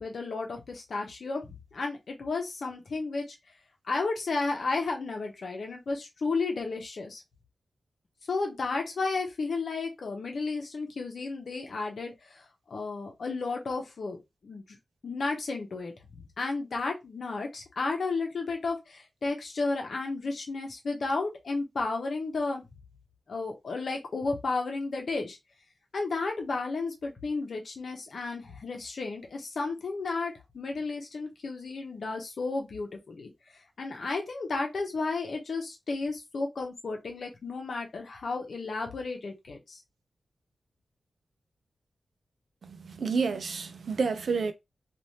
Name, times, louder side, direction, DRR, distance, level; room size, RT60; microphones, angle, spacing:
voice 1, 0.0-3.2 3.9-7.2 8.3-14.8 15.0-22.6 23.3-25.4 25.9-33.3 33.8-39.8, left 3 dB, 55° left, 0.9 m, -33 dB
voice 2, 42.6-44.5, right 5 dB, 60° right, 0.5 m, -29 dB
3.3 x 2.5 x 2.8 m
wide cardioid pair, 170°, 0 cm